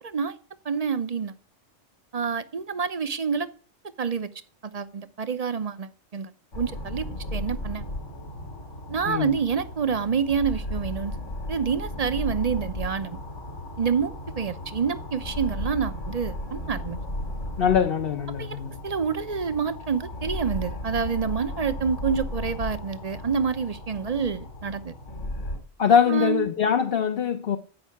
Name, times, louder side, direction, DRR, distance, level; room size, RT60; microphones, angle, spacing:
voice 1, 0.0-0.4 0.6-1.3 2.1-3.5 4.0-4.3 4.7-6.3 6.6-7.8 8.9-11.1 11.5-13.2 13.8-17.0 18.4-24.9 26.1-26.4, right 6 dB, 35° right, 0.8 m, -28 dB
sound 1, 6.5-25.6, left 1 dB, 90° left, 4.0 m, -35 dB
voice 2, 9.1-9.4 17.6-18.8 25.8-27.6, left 7 dB, 55° left, 1.0 m, -22 dB
14.0 x 5.6 x 8.4 m
omnidirectional pair, 1.2 m